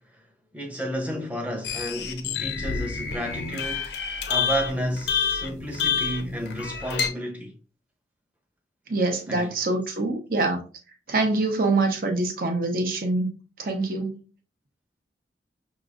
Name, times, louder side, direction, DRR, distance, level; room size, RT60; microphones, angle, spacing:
voice 1, 0.5-3.9 4.3-7.5 9.3-9.5, equal, 10° right, 0.7 m, -31 dB
sound 1, 1.6-7.1, left 6 dB, 75° left, 0.6 m, -28 dB
voice 2, 8.9-10.6 11.1-13.3 13.6-14.2, right 2 dB, 50° right, 0.8 m, -25 dB
5.9 x 3.1 x 2.5 m
head